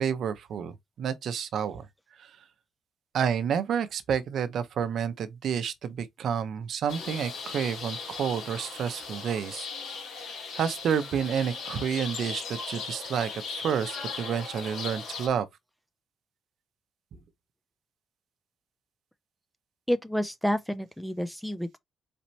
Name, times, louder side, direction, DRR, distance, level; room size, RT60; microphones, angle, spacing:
voice 1, 0.0-1.9 2.2-2.3 3.1-9.7 9.9-15.5, right 7 dB, 50° right, 0.6 m, -30 dB
sound 1, 6.9-15.3, left 5 dB, 70° left, 2.5 m, -38 dB
voice 2, 19.9-21.8, equal, ahead, 0.3 m, -29 dB
4.3 x 4.2 x 2.7 m
cardioid pair, 175°, 0 cm